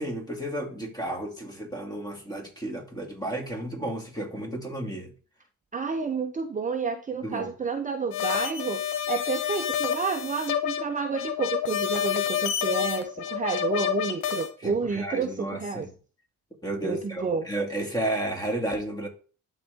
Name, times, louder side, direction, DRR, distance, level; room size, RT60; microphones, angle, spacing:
voice 1, 0.0-5.1 7.2-7.5 14.6-15.9 16.6-19.1, right 1 dB, 15° left, 2.5 m, -32 dB
voice 2, 5.7-8.8 9.1-15.9 16.8-17.5, right 5 dB, 25° right, 0.7 m, -30 dB
sound 1, 8.1-14.5, left 9 dB, 85° left, 1.0 m, -28 dB
11.5 x 4.1 x 3.6 m
cardioid pair, 90°, 30 cm